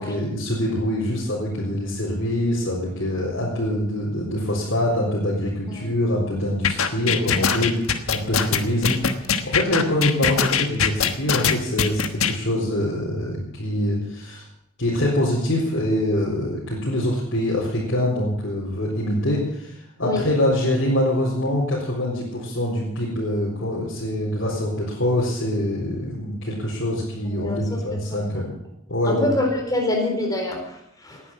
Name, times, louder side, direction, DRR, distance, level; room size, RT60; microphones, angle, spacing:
voice 1, 0.0-9.0 9.4-14.4 14.8-19.7 20.0-28.5 28.9-29.2, left 1 dB, 60° left, -5 dB, 4.2 m, -24 dB
sound 1, 6.6-12.3, left 6 dB, 80° left, 1.3 m, -21 dB
voice 2, 27.4-27.8 28.2-28.3 29.0-31.2, left 1 dB, 15° left, 2 dB, 4.2 m, -26 dB
18.5 x 10.0 x 7.4 m, 0.79 s
head